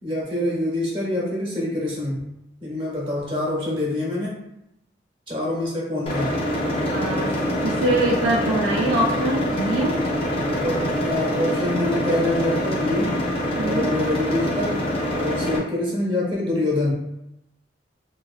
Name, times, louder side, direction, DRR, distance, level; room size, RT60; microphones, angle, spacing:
voice 1, 0.0-2.2 2.6-4.3 5.3-6.4 10.3-13.2 13.6-14.8 15.1-16.9, left 1 dB, 30° right, -4 dB, 0.7 m, -25 dB
sound 1, 6.1-15.6, equal, 30° left, 0.4 m, -25 dB
voice 2, 6.9-10.0 13.6-13.9, right 1 dB, 65° right, -2 dB, 0.3 m, -24 dB
2.4 x 2.3 x 2.3 m, 0.85 s
head